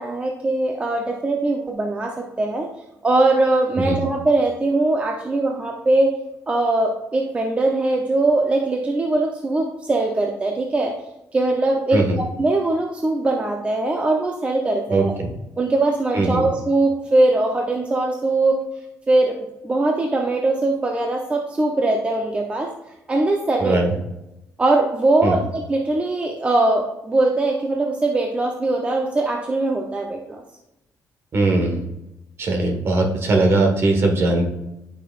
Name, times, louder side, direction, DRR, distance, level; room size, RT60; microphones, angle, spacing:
voice 1, 0.0-2.7 3.0-6.1 6.5-10.9 11.3-12.0 12.4-15.1 15.6-18.6 19.1-19.4 19.6-22.7 23.1-23.8 24.6-30.4, right 2 dB, 20° right, 1 dB, 0.8 m, -21 dB
voice 2, 14.9-15.3 16.1-16.4 23.6-23.9 25.2-25.4 31.3-31.8 32.4-34.4, right 2 dB, 45° right, 2 dB, 1.6 m, -20 dB
13.0 x 5.9 x 2.5 m, 0.90 s
cardioid pair, 145°, 6 cm